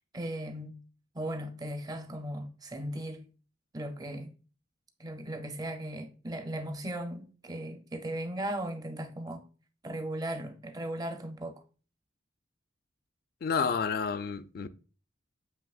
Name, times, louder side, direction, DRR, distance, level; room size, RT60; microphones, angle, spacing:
voice 1, 0.1-0.8 1.1-3.2 3.7-4.3 5.0-9.4 9.8-11.6, right 1 dB, 20° right, 0.5 m, -37 dB
voice 2, 13.4-14.7, left 5 dB, 50° left, 0.3 m, -30 dB
7.8 x 2.9 x 2.4 m
head